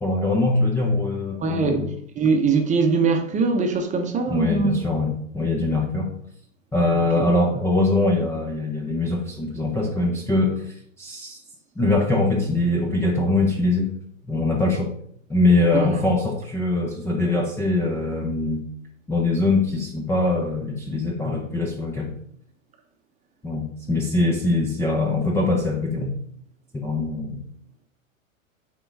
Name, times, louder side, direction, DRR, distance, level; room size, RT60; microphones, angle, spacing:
voice 1, 0.0-1.8 4.3-6.2 6.7-11.4 11.8-13.9 14.3-14.9 15.3-18.6 19.1-22.1 23.4-26.1 26.7-27.4, left 2 dB, 5° left, 0.6 m, -22 dB
voice 2, 1.4-4.8 6.9-7.2 15.7-15.9, right 4 dB, 20° right, 0.9 m, -22 dB
6.1 x 3.8 x 4.7 m
hypercardioid pair, 105°, 41 cm